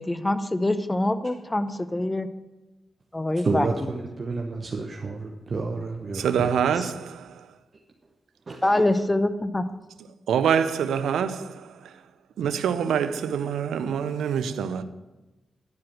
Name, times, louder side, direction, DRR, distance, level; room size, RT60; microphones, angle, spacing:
voice 1, 0.0-2.3 3.1-3.9 8.6-9.6, left 1 dB, 20° left, 0.7 m, -25 dB
voice 2, 3.4-6.5 8.5-8.8, right 3 dB, 50° right, 0.9 m, -30 dB
voice 3, 6.1-7.3 10.3-11.6 12.4-14.8, right 7 dB, 85° right, 0.5 m, -25 dB
10.5 x 4.8 x 6.1 m
supercardioid pair, 45°, 0 cm